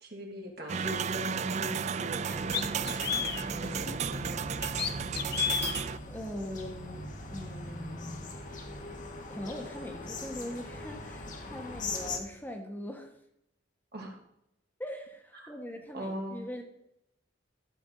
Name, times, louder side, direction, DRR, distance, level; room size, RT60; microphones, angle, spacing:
voice 1, 0.0-2.6 3.5-4.6 13.9-14.2 15.4-15.5 15.9-16.4, equal, 55° right, 0 dB, 2.4 m, -40 dB
sound 1, 0.7-6.0, right 6 dB, 35° right, 0.3 m, -33 dB
sound 2, 1.7-1.8 2.5-3.5 4.6-5.8, left 9 dB, 60° left, 0.8 m, -31 dB
sound 3, 2.3-12.2, left 2 dB, 45° left, 1.3 m, -41 dB
voice 2, 6.1-8.2 9.3-13.1 14.8-16.6, left 1 dB, 10° left, 3 dB, 1.1 m, -41 dB
12.5 x 8.0 x 3.8 m, 0.81 s
head